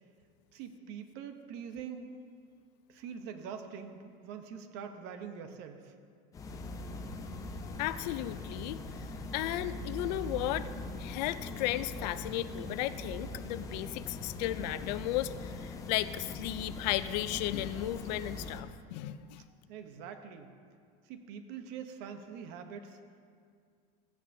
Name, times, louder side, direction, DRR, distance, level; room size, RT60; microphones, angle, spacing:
voice 1, 0.5-2.1 2.9-5.9 19.7-20.5 21.0-23.0, right 7 dB, 50° right, 7 dB, 0.9 m, -44 dB
sound 1, 6.3-18.6, left 2 dB, 15° left, 0.6 m, -41 dB
voice 2, 7.8-10.7 11.0-19.4, left 14 dB, 80° left, 13 dB, 0.5 m, -35 dB
16.5 x 8.7 x 2.7 m, 2.2 s
cardioid pair, 165°, 21 cm